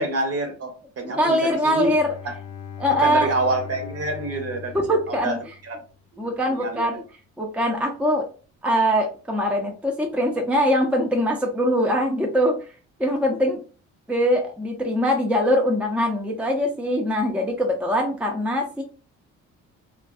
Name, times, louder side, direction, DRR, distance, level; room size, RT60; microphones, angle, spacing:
voice 1, 0.0-1.9 2.2-2.3 2.9-4.7 5.1-5.4 5.6-5.8 6.1-7.0, right 2 dB, 50° right, 4 dB, 0.9 m, -27 dB
voice 2, 1.1-2.1 2.8-3.3 4.7-5.4 6.2-7.0 7.4-8.2 8.6-12.6 13.0-13.6 14.1-18.8, equal, 5° right, 1 dB, 0.6 m, -22 dB
Bowed string instrument, 1.7-6.0, left 7 dB, 55° left, 0.5 m, -39 dB
2.5 x 2.3 x 2.4 m, 0.35 s
cardioid pair, 90°, 30 cm